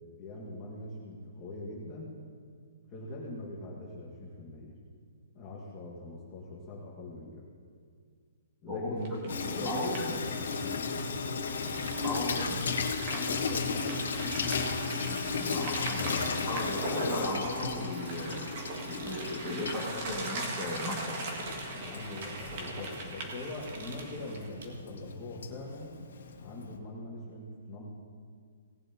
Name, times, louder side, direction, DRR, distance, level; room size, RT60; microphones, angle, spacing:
voice 1, 0.0-2.1 2.9-4.8 5.3-7.4 8.6-11.2 13.0-14.4 21.8-25.9 26.4-27.9, left 2 dB, 15° left, -6 dB, 1.5 m, -42 dB
voice 2, 8.7-9.2 9.6-10.2 11.8-12.6 15.3-18.5 18.9-21.4, left 1 dB, 5° right, -6 dB, 1.7 m, -36 dB
sound 1, 9.0-24.5, right 2 dB, 30° right, 1.5 m, -41 dB
Water tap faucet / Sink (filling or washing), 9.3-26.8, left 5 dB, 75° left, 1.3 m, -35 dB
sound 2, 11.4-24.7, right 2 dB, 70° right, 2.0 m, -52 dB
18.5 x 11.0 x 2.8 m, 2.1 s
hypercardioid pair, 175°, 0 cm